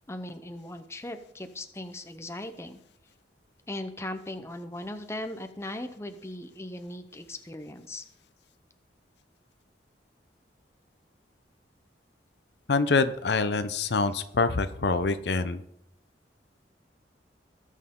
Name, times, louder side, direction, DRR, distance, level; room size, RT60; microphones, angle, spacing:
voice 1, 0.1-2.8 3.7-8.0, left 1 dB, 15° left, 8 dB, 0.7 m, -38 dB
voice 2, 12.7-15.6, left 4 dB, 65° left, 11 dB, 0.7 m, -25 dB
19.0 x 6.5 x 3.8 m, 0.77 s
head